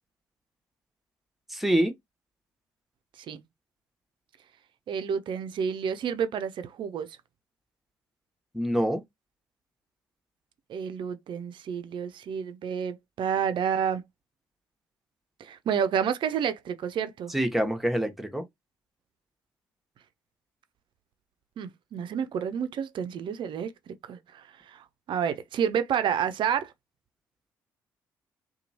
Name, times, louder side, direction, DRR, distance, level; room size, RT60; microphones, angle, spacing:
voice 1, 1.5-1.9 8.5-9.0 17.3-18.4, right 1 dB, ahead, 0.9 m, -26 dB
voice 2, 4.9-7.1 10.7-14.0 15.4-17.3 21.6-26.7, right 8 dB, 55° right, 0.5 m, -30 dB
2.9 x 2.3 x 2.6 m
hypercardioid pair, 45°, 10 cm